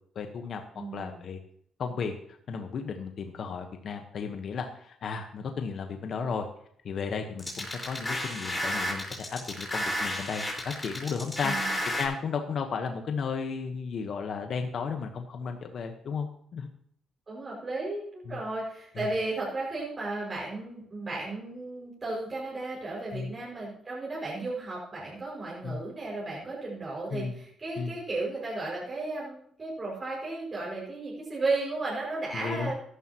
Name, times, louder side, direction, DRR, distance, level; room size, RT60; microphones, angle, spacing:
voice 1, 0.1-0.6 0.9-1.4 1.8-2.1 2.5-6.5 6.8-11.7 12.0-16.7 18.3-18.4 19.0-19.1 23.1-23.3 25.6-25.8 27.1-27.4 27.8-27.9 32.3-32.7, left 5 dB, 60° left, 5 dB, 1.2 m, -34 dB
voice 2, 0.7-1.2 11.4-11.7 17.3-32.7, right 2 dB, 30° right, -4 dB, 5.9 m, -34 dB
sound 1, 7.4-12.1, left 1 dB, 15° left, 4.7 m, -32 dB
14.5 x 11.5 x 3.0 m, 0.66 s
cardioid pair, 90°, 0 cm